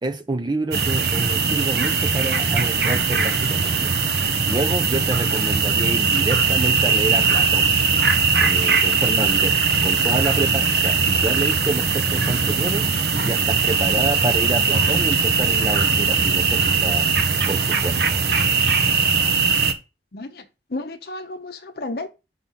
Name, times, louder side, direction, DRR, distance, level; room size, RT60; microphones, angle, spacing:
voice 1, 0.0-3.9 4.5-7.7 8.4-12.9 13.2-17.1 17.5-18.2, right 2 dB, 25° right, 0.5 m, -28 dB
sound 1, 0.7-19.7, right 5 dB, 65° right, 1.1 m, -20 dB
voice 2, 20.1-20.4 20.7-22.1, left 2 dB, 60° left, 0.8 m, -32 dB
6.0 x 5.8 x 5.5 m
head